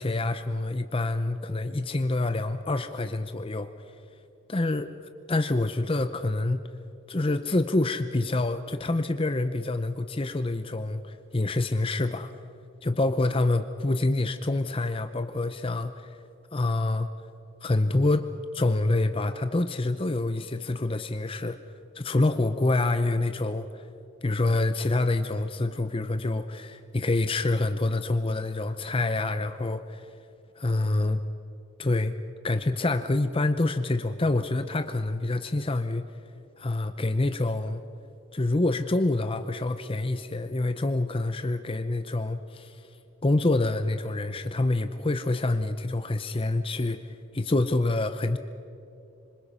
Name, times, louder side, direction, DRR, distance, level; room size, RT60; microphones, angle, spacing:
voice 1, 0.0-3.7 4.5-4.9 5.3-6.6 7.1-12.3 12.8-16.2 16.5-17.1 17.6-18.3 18.5-21.6 21.9-23.9 24.2-30.1 30.6-31.2 31.8-32.2 32.4-36.0 36.6-37.8 38.3-42.9 43.2-48.4, left 2 dB, 25° left, 10 dB, 0.6 m, -27 dB
27.0 x 25.5 x 5.6 m, 2.7 s
head